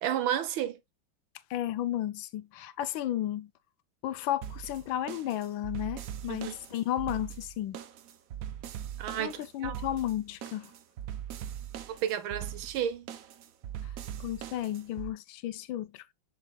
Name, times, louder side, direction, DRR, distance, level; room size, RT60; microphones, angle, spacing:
voice 1, 0.0-0.8 6.3-6.5 9.0-9.8 12.0-13.1, right 10 dB, 80° right, 1.7 m, -32 dB
voice 2, 1.5-3.5 4.0-7.8 9.2-10.7 13.8-13.9 14.2-16.1, left 12 dB, 75° left, 1.4 m, -33 dB
sound 1, 4.4-15.1, right 10 dB, 65° right, 0.9 m, -41 dB
6.9 x 6.4 x 2.3 m
omnidirectional pair, 2.2 m